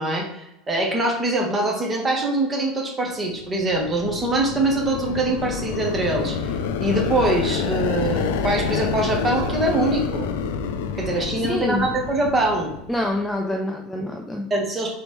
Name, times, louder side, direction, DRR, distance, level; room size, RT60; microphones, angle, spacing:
voice 1, 0.0-10.3 10.9-12.7 14.5-15.0, right 2 dB, 20° right, 1 dB, 1.1 m, -23 dB
sound 1, 3.4-13.2, left 6 dB, 90° left, 0.4 m, -28 dB
voice 2, 11.4-11.8 12.9-14.5, left 1 dB, 5° left, 1 dB, 0.4 m, -26 dB
3.9 x 3.1 x 3.5 m, 0.88 s
supercardioid pair, 140°, 0 cm